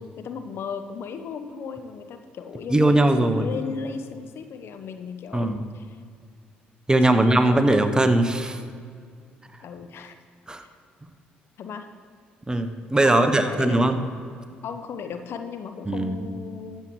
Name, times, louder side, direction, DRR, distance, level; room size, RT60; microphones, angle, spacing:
voice 1, 0.0-5.8 7.1-7.6 9.6-10.2 11.6-11.9 13.0-13.9 14.6-16.8, left 6 dB, 60° left, 8 dB, 0.8 m, -36 dB
voice 2, 2.7-3.5 5.3-5.6 6.9-8.6 10.5-10.6 12.5-14.0 15.9-16.2, right 1 dB, 15° right, 8 dB, 1.1 m, -20 dB
13.5 x 7.7 x 4.7 m, 2.1 s
hypercardioid pair, 55°, 4 cm